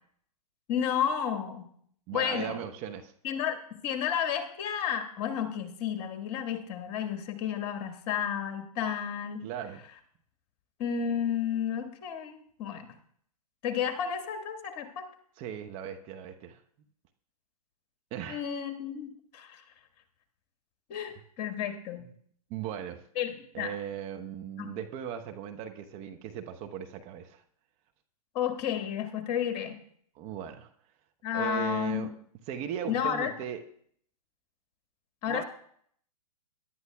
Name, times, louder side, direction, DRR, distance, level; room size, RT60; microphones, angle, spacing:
voice 1, 0.7-1.7 2.1-2.6 3.2-9.4 10.8-12.9 13.6-15.1 18.3-19.6 20.9-22.1 23.2-23.7 24.6-24.7 28.3-29.8 31.2-32.1 32.9-33.3 35.2-35.4, left 8 dB, 40° left, 5 dB, 1.7 m, -32 dB
voice 2, 2.1-3.1 9.4-9.8 15.4-16.6 18.1-18.5 22.0-22.1 22.5-23.0 23.5-27.4 30.1-30.7 31.3-32.1 32.5-33.6 35.3-35.4, right 9 dB, 30° right, 6 dB, 0.9 m, -38 dB
21.5 x 11.0 x 2.3 m, 0.62 s
figure-of-eight pair, 110°, 20 cm